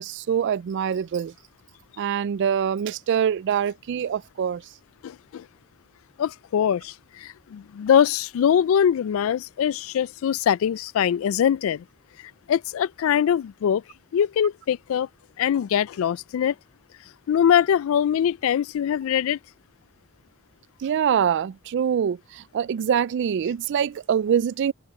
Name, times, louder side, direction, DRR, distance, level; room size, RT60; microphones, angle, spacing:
voice 1, 0.0-1.3 2.0-4.6 20.8-24.7, right 8 dB, 55° right, 0.3 m, -24 dB
voice 2, 5.0-5.5 6.2-11.8 12.2-13.8 14.1-15.1 15.4-16.6 17.3-19.4, left 8 dB, 70° left, 0.3 m, -22 dB
open air
head